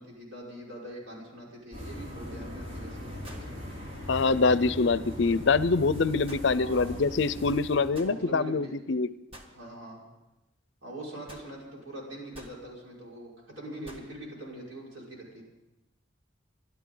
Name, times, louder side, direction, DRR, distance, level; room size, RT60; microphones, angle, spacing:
voice 1, 0.0-3.4 6.5-7.0 7.8-8.7 9.5-10.0 10.8-15.4, right 1 dB, 85° right, -3 dB, 5.7 m, -43 dB
sound 1, 1.7-7.9, left 1 dB, 60° right, 4.9 m, -40 dB
sound 2, 2.0-2.1 3.2-3.6 6.3-6.5 7.9-8.2 9.3-9.5 11.3-11.5 12.3-12.6 13.8-14.1, right 1 dB, 30° right, 1.7 m, -48 dB
voice 2, 4.1-9.1, left 4 dB, 65° left, 16 dB, 0.5 m, -25 dB
29.0 x 12.0 x 3.9 m, 0.98 s
head